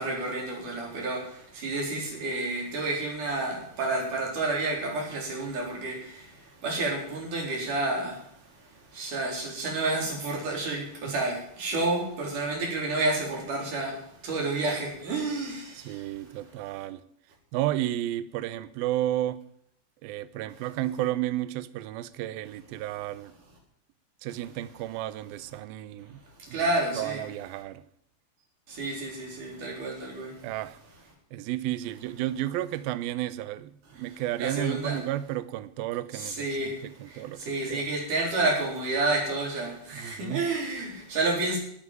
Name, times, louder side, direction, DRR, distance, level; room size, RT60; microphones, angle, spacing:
voice 1, 0.0-8.2 8.9-16.1 26.5-27.2 28.7-30.3 34.4-35.0 36.1-41.6, right 2 dB, 50° right, 5.3 m, -30 dB
voice 2, 15.8-17.0 17.5-19.4 20.0-23.3 24.2-26.2 26.5-26.7 27.0-27.8 30.4-30.8 31.3-37.8 39.9-40.5, right 14 dB, 80° right, 2.2 m, -32 dB
12.5 x 8.6 x 9.0 m
omnidirectional pair, 5.0 m